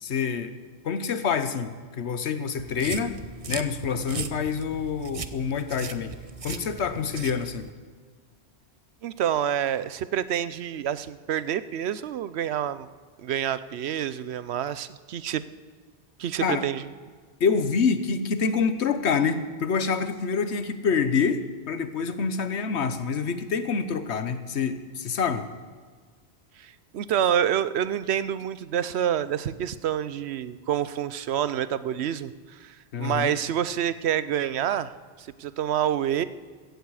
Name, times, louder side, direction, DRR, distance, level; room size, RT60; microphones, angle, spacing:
voice 1, 0.0-0.5 0.8-3.2 3.5-7.7 16.4-16.6 17.4-25.4 32.9-33.3, left 5 dB, 75° left, 10 dB, 1.2 m, -27 dB
sound 1, 2.6-7.7, right 5 dB, 40° right, 0.6 m, -38 dB
voice 2, 9.0-12.9 13.2-15.4 16.2-16.8 26.6-34.9 35.2-36.2, right 10 dB, 70° right, 15 dB, 0.9 m, -27 dB
16.0 x 15.0 x 4.8 m, 1.5 s
omnidirectional pair, 1.1 m